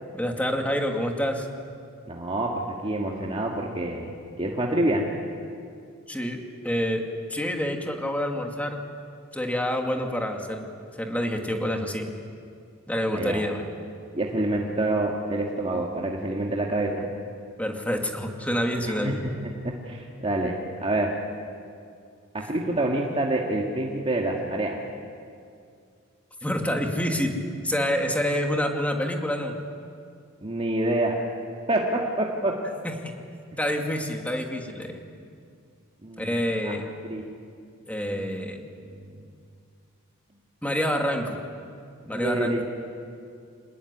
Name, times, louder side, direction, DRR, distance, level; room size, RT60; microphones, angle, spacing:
voice 1, 0.1-1.5 6.1-6.4 6.6-7.0 7.3-8.8 9.3-10.7 11.0-12.1 12.9-13.7 17.6-19.2 26.4-27.4 27.6-29.5 32.8-32.9 33.6-35.0 36.2-36.9 37.9-38.6 40.6-41.4 42.1-42.5, equal, 5° left, 2 dB, 2.6 m, -27 dB
voice 2, 2.1-2.5 2.8-5.1 13.1-13.5 14.1-17.1 18.9-19.1 19.9-21.1 22.3-24.8 30.4-31.2 31.7-32.5 36.0-36.7 37.0-37.2 38.1-38.5 38.8-39.0 42.1-42.6, right 1 dB, 30° right, -2 dB, 2.1 m, -27 dB
25.5 x 20.5 x 9.9 m, 2.3 s
head